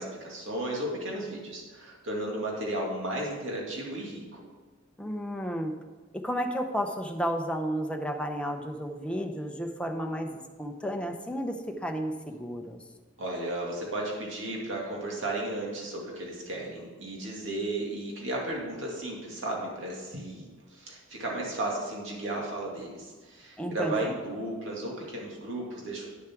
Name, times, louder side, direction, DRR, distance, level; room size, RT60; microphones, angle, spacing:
voice 1, 0.0-4.4 13.2-20.4 20.7-26.1, right 1 dB, 70° right, -2 dB, 2.3 m, -34 dB
voice 2, 5.0-5.7 6.1-12.8 23.6-24.2, equal, 5° left, 3 dB, 0.7 m, -32 dB
9.8 x 7.2 x 4.6 m, 1.4 s
head